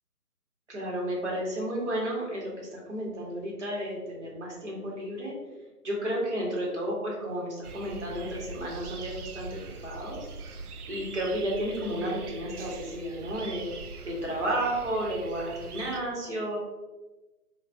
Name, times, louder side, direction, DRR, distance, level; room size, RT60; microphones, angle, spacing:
voice 1, 0.7-5.3 5.8-10.2 10.9-13.7 14.0-16.6, right 1 dB, 45° right, -3 dB, 1.2 m, -32 dB
sound 1, 7.6-16.0, right 4 dB, 70° right, 0.5 m, -42 dB
3.2 x 2.4 x 3.4 m, 1.1 s
figure-of-eight pair, 150°, 47 cm